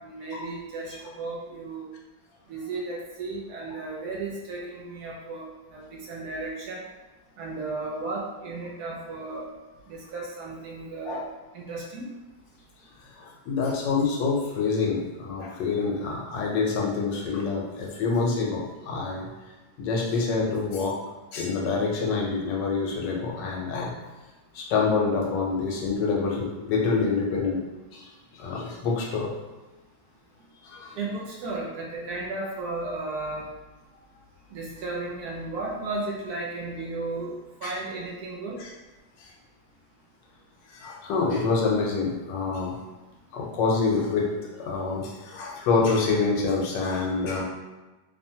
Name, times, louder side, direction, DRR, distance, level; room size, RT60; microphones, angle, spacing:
voice 1, 0.0-1.9 2.5-6.8 7.4-9.5 9.9-11.2 11.5-12.1 30.9-33.5 34.5-37.3 37.6-38.6, right 3 dB, 70° right, -3 dB, 1.0 m, -34 dB
voice 2, 13.2-19.3 19.8-20.9 21.3-23.9 24.5-27.6 27.9-29.3 30.6-31.0 37.6-37.7 38.6-38.7 39.2-39.3 40.7-42.7 43.3-47.4, left 4 dB, 90° left, -2 dB, 1.3 m, -26 dB
3.0 x 2.1 x 2.7 m, 1.1 s
omnidirectional pair, 1.9 m